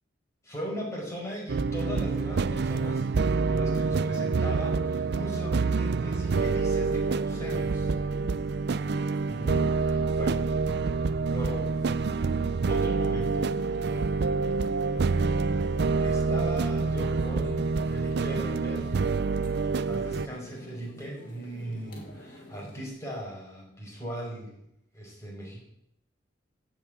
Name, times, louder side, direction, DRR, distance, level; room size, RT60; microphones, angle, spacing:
voice 1, 0.4-3.0 3.4-8.0 9.3-10.4 11.0-11.7 12.7-13.5 16.0-19.0 19.6-24.5 24.9-25.6, equal, 15° left, -2 dB, 5.4 m, -38 dB
sound 1, 1.5-20.3, right 4 dB, 60° right, 0.4 m, -27 dB
sound 2, 4.2-22.9, left 1 dB, 45° left, 3.4 m, -48 dB
15.5 x 6.2 x 9.5 m, 0.79 s
head